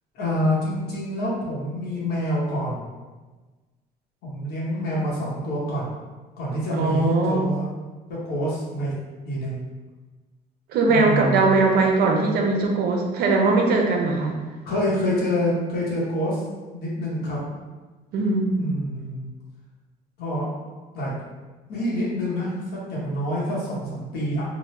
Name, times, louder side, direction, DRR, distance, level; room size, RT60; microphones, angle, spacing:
voice 1, 0.1-2.8 4.2-5.9 6.4-7.7 8.2-8.9 9.3-9.6 10.9-11.6 14.6-16.4 16.7-17.4 18.6-19.3 20.2-20.5 20.9-21.1 21.7-24.4, equal, 70° left, -6 dB, 1.0 m, -26 dB
voice 2, 6.7-7.4 10.7-14.4 18.1-18.6, right 3 dB, 65° right, 1 dB, 0.6 m, -20 dB
2.9 x 2.1 x 3.1 m, 1.3 s
cardioid pair, 110°, 17 cm